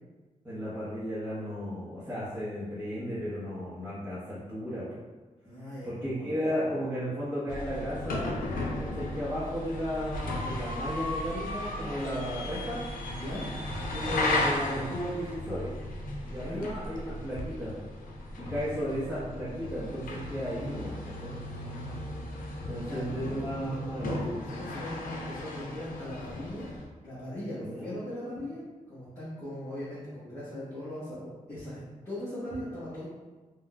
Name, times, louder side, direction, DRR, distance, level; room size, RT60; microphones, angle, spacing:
voice 1, 0.4-4.9 5.8-12.8 13.9-15.7 16.2-17.8 18.4-21.4 22.6-24.2 27.6-28.0, equal, 10° right, -12 dB, 1.0 m, -34 dB
voice 2, 5.4-6.4 13.1-13.5 16.3-16.7 21.5-22.2 22.9-23.0 24.0-26.7 27.0-33.0, left 1 dB, 20° left, -12 dB, 1.2 m, -39 dB
sound 1, 7.5-26.8, left 2 dB, 80° left, 0.5 m, -35 dB
3.7 x 2.4 x 2.3 m, 1.3 s
cardioid pair, 75°, 14 cm